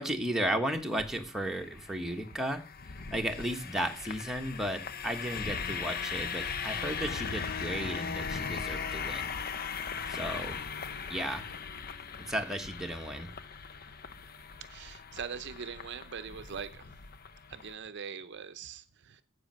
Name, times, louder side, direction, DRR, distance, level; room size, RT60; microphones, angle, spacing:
voice 1, 0.0-2.6 3.1-9.4 10.1-10.6 11.1-11.4 12.3-13.3, right 1 dB, ahead, 1.4 m, -34 dB
sound 1, 0.8-17.7, left 6 dB, 45° left, 0.7 m, -39 dB
voice 2, 14.7-16.8 17.5-19.2, right 6 dB, 55° right, 0.6 m, -42 dB
10.0 x 7.9 x 6.3 m
head